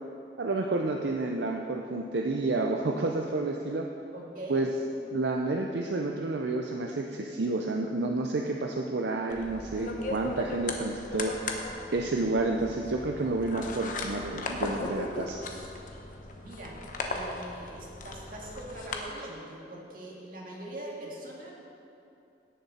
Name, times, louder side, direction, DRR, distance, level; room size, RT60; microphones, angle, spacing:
voice 1, 0.4-3.9 4.5-4.7 5.1-11.3 11.9-15.4, right 2 dB, 75° right, 2 dB, 0.6 m, -30 dB
voice 2, 4.1-4.7 16.4-16.8 17.1-21.5, right 1 dB, 50° right, -3 dB, 2.1 m, -42 dB
sound 1, 9.3-19.0, left 2 dB, 50° left, 1.0 m, -37 dB
17.0 x 6.8 x 4.3 m, 2.7 s
head